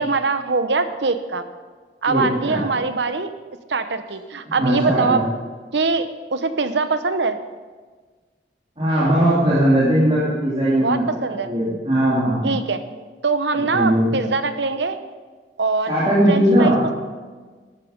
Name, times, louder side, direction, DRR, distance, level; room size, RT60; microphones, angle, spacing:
voice 1, 0.0-1.5 2.0-3.3 3.7-5.2 5.7-7.4 10.8-11.5 12.4-12.8 13.2-15.0 15.6-16.0 16.3-16.9, right 4 dB, 80° right, 10 dB, 0.9 m, -22 dB
voice 2, 2.1-2.6 4.5-5.2 8.8-12.5 13.7-14.1 15.9-16.8, equal, 30° right, -10 dB, 3.0 m, -19 dB
13.0 x 11.5 x 5.3 m, 1.4 s
head